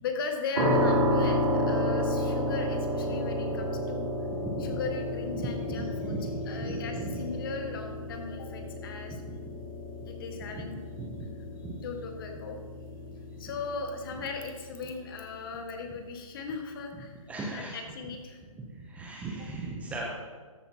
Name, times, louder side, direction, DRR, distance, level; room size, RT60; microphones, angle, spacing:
voice 1, 0.0-4.1 4.6-9.2 10.1-10.8 11.8-12.6 13.4-17.1 17.5-18.4, left 4 dB, 40° left, 4 dB, 1.5 m, -38 dB
sound 1, 0.5-15.4, equal, 75° right, 2.1 m, -31 dB
voice 2, 4.4-4.8 5.3-7.2 10.5-10.6 11.0-11.3 11.6-11.7 17.3-17.8 18.8-20.1, right 2 dB, 10° right, -2 dB, 0.7 m, -37 dB
13.5 x 8.1 x 2.8 m, 1.4 s
hypercardioid pair, 145°, 18 cm